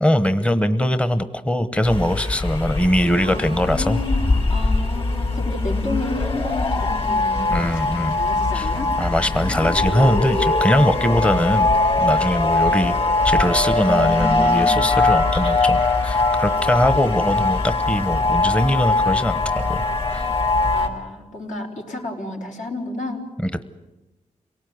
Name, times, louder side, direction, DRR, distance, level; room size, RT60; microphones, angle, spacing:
voice 1, 0.0-4.0 7.5-8.2 8.5-8.7 9.0-11.7 12.0-12.9 13.2-19.8 20.1-20.3 23.4-23.6, equal, 10° left, 11 dB, 1.0 m, -21 dB
sound 1, 1.8-20.9, left 3 dB, 45° left, 4.6 m, -21 dB
voice 2, 3.2-8.9 11.2-11.3 13.7-14.8 17.0-17.3 20.7-23.2, left 2 dB, 70° left, 0 dB, 4.8 m, -31 dB
27.0 x 18.5 x 9.5 m, 1.1 s
cardioid pair, 90°, 13 cm